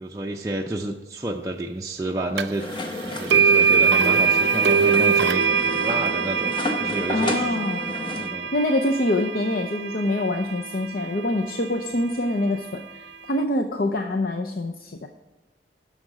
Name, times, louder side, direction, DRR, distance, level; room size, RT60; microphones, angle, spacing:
voice 1, 0.0-6.5 6.8-7.6 7.9-8.5, right 1 dB, 20° right, 0 dB, 0.5 m, -30 dB
sound 1, 2.4-2.5 3.3-11.3, right 6 dB, 75° right, 0.5 m, -22 dB
sound 2, 2.6-8.3, left 2 dB, 30° left, 0.8 m, -32 dB
voice 2, 7.1-7.9 8.5-15.1, left 1 dB, 55° left, 4 dB, 0.6 m, -25 dB
10.0 x 6.5 x 4.9 m, 1.1 s
head